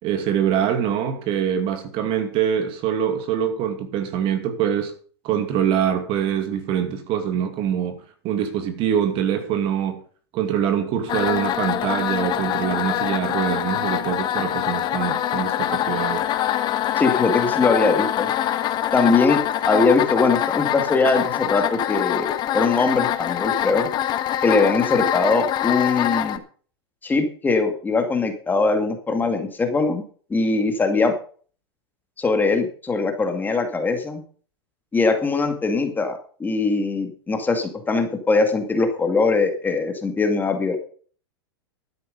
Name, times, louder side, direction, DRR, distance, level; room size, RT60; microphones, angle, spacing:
voice 1, 0.0-4.9 5.2-10.0 10.3-16.3, right 9 dB, 40° right, 2.5 m, -24 dB
sound 1, 11.1-26.4, left 12 dB, 30° left, 1.3 m, -24 dB
voice 2, 17.0-18.3 18.9-19.4 19.7-23.9 24.4-26.4 27.0-30.0 30.3-31.1 32.2-34.2 34.9-40.8, left 3 dB, 15° left, 2.3 m, -21 dB
12.5 x 9.6 x 5.4 m
hypercardioid pair, 125°, 14 cm